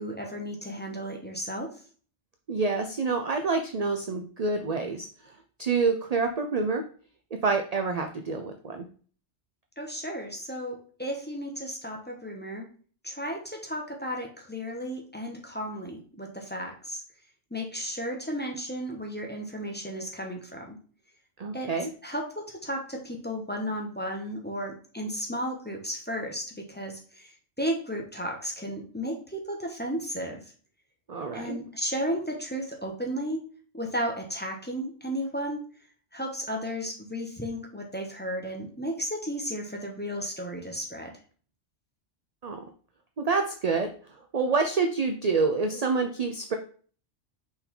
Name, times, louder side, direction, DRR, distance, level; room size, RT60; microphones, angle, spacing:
voice 1, 0.0-1.7 9.8-12.7 13.0-17.0 17.5-20.8 21.5-21.7 22.0-30.4 31.3-33.4 33.7-35.7 36.1-41.1, equal, 10° left, 0 dB, 1.1 m, -34 dB
voice 2, 2.5-5.3 5.6-6.8 7.3-8.9 21.4-21.9 31.1-31.6 42.4-42.6 43.2-46.6, right 4 dB, 45° right, 5 dB, 0.5 m, -27 dB
5.7 x 4.5 x 3.7 m, 0.42 s
omnidirectional pair, 1.2 m